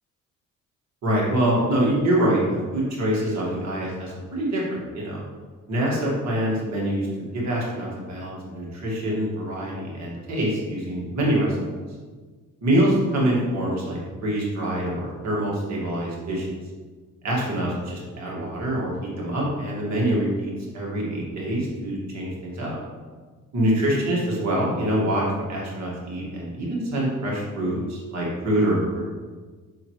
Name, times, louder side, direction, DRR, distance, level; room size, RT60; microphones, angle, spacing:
voice 1, 1.0-2.4 2.7-5.2 5.7-11.6 12.6-16.5 17.2-22.8 23.5-28.8, right 1 dB, 65° right, -3 dB, 1.9 m, -25 dB
6.2 x 5.7 x 3.2 m, 1.4 s
cardioid pair, 90°, 30 cm